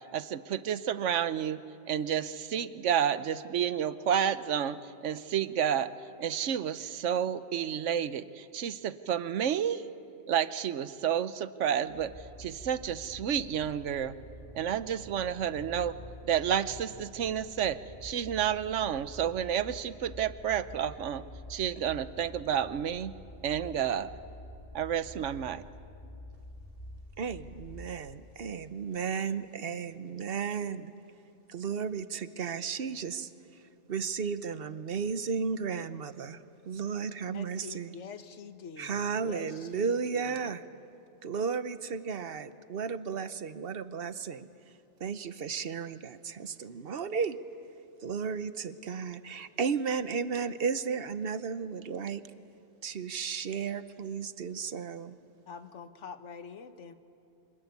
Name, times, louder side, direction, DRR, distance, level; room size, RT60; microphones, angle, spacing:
voice 1, 0.1-1.6 1.9-5.9 6.2-9.8 10.3-12.1 12.4-14.1 14.5-16.0 16.3-21.2 21.5-23.1 23.4-24.1 24.7-25.6, right 9 dB, 90° right, 14 dB, 1.1 m, -30 dB
sound 1, 11.9-28.1, left 1 dB, 40° left, 4.7 m, -48 dB
voice 2, 27.2-30.9 31.5-33.6 33.9-38.0 38.8-40.6 41.2-44.5 45.0-47.4 48.0-52.2 52.8-55.1, right 6 dB, 55° right, 13 dB, 1.0 m, -34 dB
voice 3, 37.3-39.9 55.5-56.9, left 6 dB, 80° left, 10 dB, 1.4 m, -45 dB
25.0 x 21.0 x 9.5 m, 2.7 s
omnidirectional pair, 1.2 m